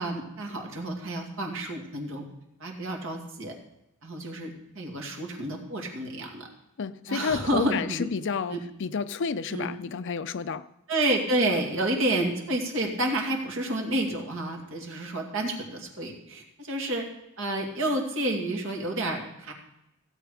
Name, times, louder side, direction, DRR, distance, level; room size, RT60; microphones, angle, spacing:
voice 1, 0.0-2.2 2.6-3.6 4.0-6.5 7.1-8.1 8.5-8.6 9.5-9.7 10.9-17.1 17.4-19.5, right 1 dB, 60° right, 2.3 m, -29 dB
voice 2, 6.8-10.7, left 5 dB, 55° left, 0.5 m, -30 dB
16.0 x 8.2 x 4.9 m
head